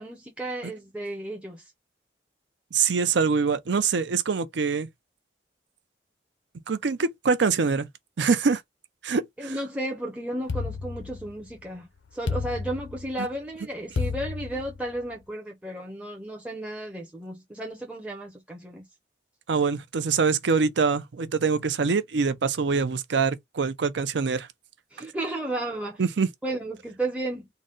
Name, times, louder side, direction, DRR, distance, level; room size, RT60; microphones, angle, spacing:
voice 1, 0.0-1.7 9.4-18.9 24.9-26.0 26.4-27.5, right 1 dB, 5° right, 0.6 m, -33 dB
voice 2, 2.7-4.9 6.7-7.9 8.2-8.6 9.0-9.5 19.5-24.5 26.0-26.3, right 5 dB, 75° right, 0.5 m, -24 dB
sound 1, 10.5-11.6 12.3-13.3 14.0-15.1, left 4 dB, 85° left, 0.5 m, -32 dB
3.9 x 2.1 x 3.7 m
head